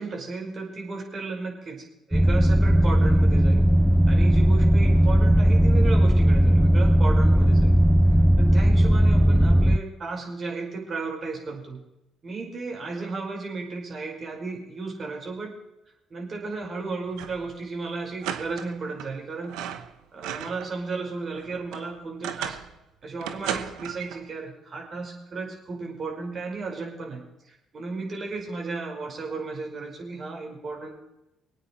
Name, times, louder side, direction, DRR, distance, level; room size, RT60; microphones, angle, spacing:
voice 1, 0.0-3.7 4.1-7.7 8.4-11.8 12.2-15.5 16.1-19.6 20.1-22.6 23.0-30.9, right 3 dB, 45° right, 0 dB, 5.3 m, -34 dB
sound 1, 2.1-9.8, equal, ahead, 0.6 m, -18 dB
sound 2, 17.1-17.5 17.7-17.8 18.2-19.1 19.4-20.7 21.1-22.7 23.2-24.2, right 10 dB, 75° right, 1.0 m, -35 dB
25.0 x 9.0 x 4.6 m, 0.88 s
hypercardioid pair, 45°, 0 cm